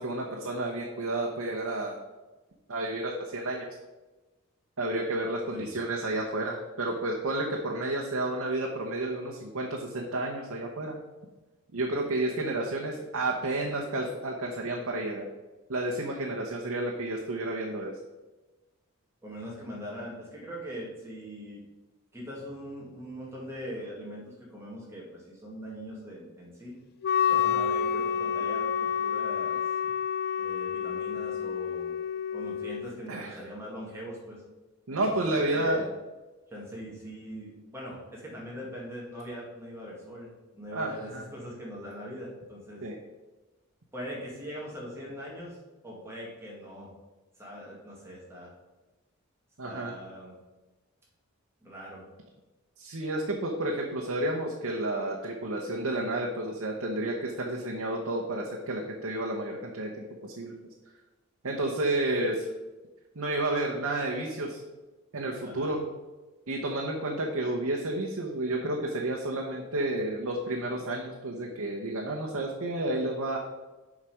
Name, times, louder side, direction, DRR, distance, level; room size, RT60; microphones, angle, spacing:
voice 1, 0.0-2.0 2.7-3.7 4.8-11.0 11.7-15.2 15.7-17.9 27.3-27.6 33.1-33.4 34.9-35.9 40.7-41.2 42.8-43.0 49.6-50.0 52.8-60.5 61.4-62.5 63.1-64.6 65.1-65.8 66.5-73.4, right 2 dB, 80° right, -1 dB, 1.0 m, -31 dB
voice 2, 19.2-21.6 22.1-26.7 27.3-29.6 30.4-31.9 32.3-34.4 34.9-35.9 36.5-42.9 43.9-45.6 45.8-46.9 47.4-48.5 49.6-50.4 51.6-52.0 65.4-65.7, equal, 10° right, -5 dB, 2.1 m, -41 dB
Wind instrument woodwind instrument, 27.0-32.9, left 8 dB, 45° left, 0.3 m, -29 dB
7.3 x 4.9 x 5.0 m, 1.1 s
head